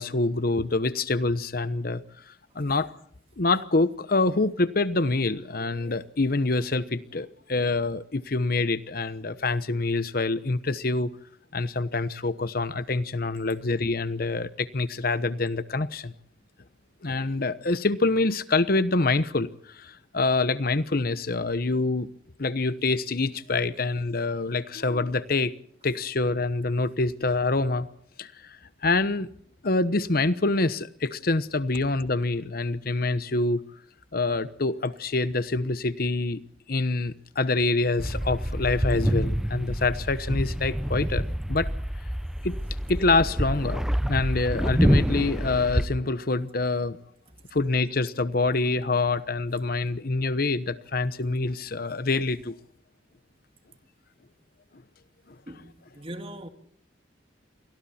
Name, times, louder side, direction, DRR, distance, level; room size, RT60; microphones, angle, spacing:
voice 1, 0.0-2.9 3.4-11.1 11.5-16.1 17.0-22.1 22.4-25.5 25.8-27.9 28.2-28.6 28.8-29.3 29.6-33.6 34.1-36.4 36.7-41.2 41.5-41.7 42.4-42.6 42.9-43.8 44.1-47.0 47.5-52.6, left 3 dB, 55° left, 1.0 m, -26 dB
sound 1, 38.0-45.9, equal, 5° right, 0.8 m, -27 dB
voice 2, 55.5-56.5, right 1 dB, 30° right, 2.3 m, -40 dB
30.0 x 24.0 x 4.3 m
head